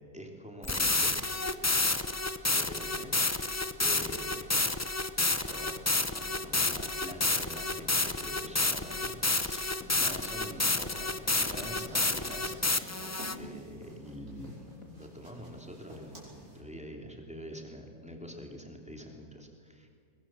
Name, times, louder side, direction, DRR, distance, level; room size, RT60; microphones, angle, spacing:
voice 1, 0.1-1.2 2.5-3.1 3.8-4.6 5.4-5.8 6.1-9.7 10.0-12.6 12.9-13.0 13.3-19.9, equal, 5° right, 1 dB, 3.1 m, -45 dB
sound 1, 0.6-13.4, left 2 dB, 20° left, 0.4 m, -29 dB
sound 2, 7.8-15.6, left 3 dB, 60° left, 3.0 m, -53 dB
sound 3, 11.4-16.6, right 1 dB, 70° right, 6.2 m, -49 dB
22.5 x 22.0 x 7.7 m, 2.2 s
omnidirectional pair, 1.6 m